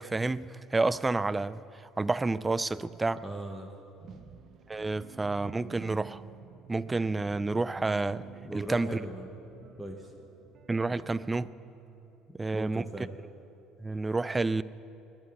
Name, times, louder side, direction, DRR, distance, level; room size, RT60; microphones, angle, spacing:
voice 1, 0.0-1.6 2.0-3.2 4.7-6.2 6.7-8.2 8.5-9.0 10.7-11.4 12.3-12.8 13.8-14.6, right 3 dB, 15° right, 17 dB, 0.3 m, -29 dB
voice 2, 3.2-3.7 4.0-4.3 8.4-9.3 9.8-10.1 12.3-13.1, right 1 dB, 5° left, 3 dB, 1.0 m, -39 dB
sound 1, 4.0-12.3, right 9 dB, 40° right, 0.8 m, -51 dB
19.0 x 10.5 x 7.1 m, 2.8 s
cardioid pair, 145°, 0 cm